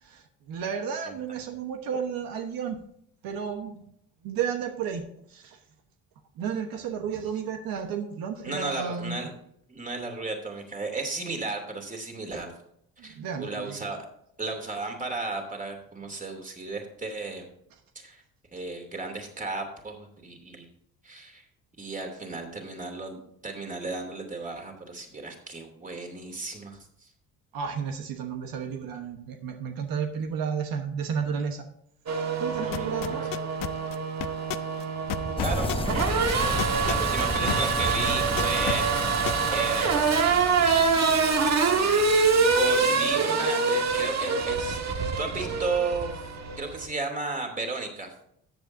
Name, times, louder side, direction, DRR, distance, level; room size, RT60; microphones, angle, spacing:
voice 1, 0.0-2.8 3.2-3.9 4.2-5.0 5.3-5.6 6.4-9.2 13.0-13.8 27.5-31.7 32.4-33.2, right 7 dB, 80° right, 5 dB, 1.2 m, -32 dB
voice 2, 8.4-9.3 9.7-12.5 13.0-14.1 14.4-17.4 17.9-18.2 18.5-20.7 21.0-21.4 21.8-27.1 32.5-33.3 35.4-38.9 39.5-40.1 42.4-46.1 46.6-48.1, right 3 dB, 20° right, 3 dB, 2.7 m, -34 dB
Race car auto racing / Accelerating revving vroom, 32.1-46.9, right 4 dB, 50° right, 1.6 m, -25 dB
sound 1, 32.7-37.8 38.1-39.6, left 15 dB, 65° left, 0.7 m, -30 dB
sound 2, 35.4-43.1, left 2 dB, 15° left, 1.0 m, -34 dB
14.0 x 8.0 x 2.7 m, 0.71 s
cardioid pair, 95°, 35 cm